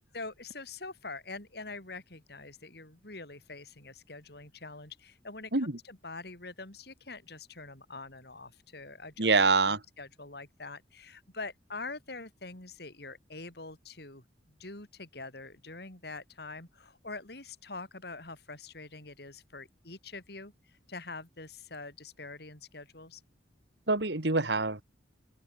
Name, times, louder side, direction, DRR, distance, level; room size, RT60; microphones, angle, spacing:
voice 1, 0.0-9.3 9.7-23.2, left 3 dB, 60° left, 4.3 m, -45 dB
voice 2, 9.2-9.8 23.9-24.8, right 3 dB, 65° right, 2.1 m, -25 dB
open air
head